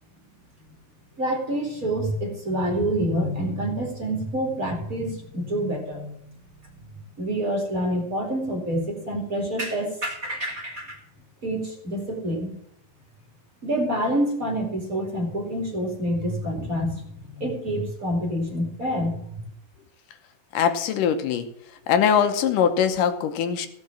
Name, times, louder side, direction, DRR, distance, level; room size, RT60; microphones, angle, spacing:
voice 1, 1.2-6.3 7.2-11.0 11.4-12.5 13.6-17.0 17.4-19.2, right 1 dB, 25° right, 0 dB, 2.6 m, -27 dB
voice 2, 20.5-21.5 21.9-23.7, left 8 dB, 80° left, 8 dB, 2.6 m, -22 dB
16.5 x 5.9 x 7.2 m, 0.75 s
omnidirectional pair, 3.7 m